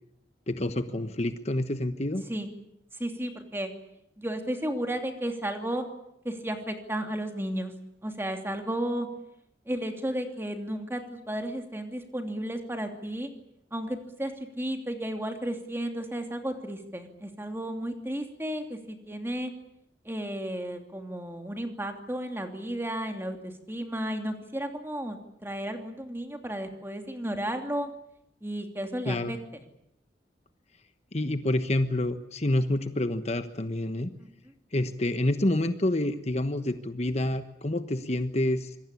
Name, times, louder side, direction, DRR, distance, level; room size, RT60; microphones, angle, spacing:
voice 1, 0.5-2.2 29.1-29.3 31.1-34.1 34.7-38.8, left 1 dB, 40° left, 9 dB, 1.2 m, -28 dB
voice 2, 2.9-3.7 4.2-5.8 6.2-7.7 8.0-9.1 9.7-13.3 13.7-14.3 14.6-19.5 20.0-27.9 28.4-29.6 34.2-34.3, right 1 dB, 15° right, 5 dB, 2.9 m, -33 dB
26.0 x 22.0 x 8.5 m, 0.77 s
head